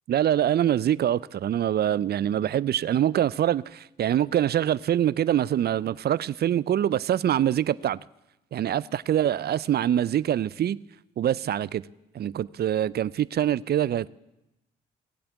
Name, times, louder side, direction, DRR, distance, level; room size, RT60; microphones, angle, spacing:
voice 1, 0.1-8.0 8.5-10.8 11.2-11.8 12.1-14.1, right 11 dB, 50° right, 0.5 m, -24 dB
18.0 x 8.5 x 8.3 m
hypercardioid pair, 50°, 21 cm